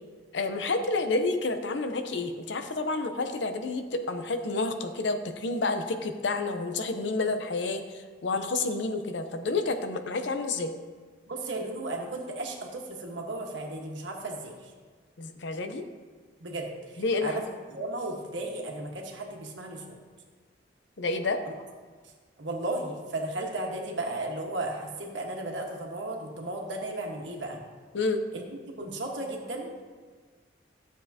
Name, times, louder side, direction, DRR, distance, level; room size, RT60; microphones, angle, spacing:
voice 1, 0.3-10.7 15.2-15.8 17.0-17.4 21.0-21.4 27.9-28.2, left 3 dB, 75° left, 7 dB, 0.7 m, -29 dB
voice 2, 11.3-14.5 16.4-17.4 17.7-20.0 21.4-21.5 22.4-27.6 28.3-28.4 28.8-29.7, right 2 dB, 85° right, 0 dB, 1.4 m, -35 dB
13.0 x 7.3 x 2.8 m, 1.5 s
head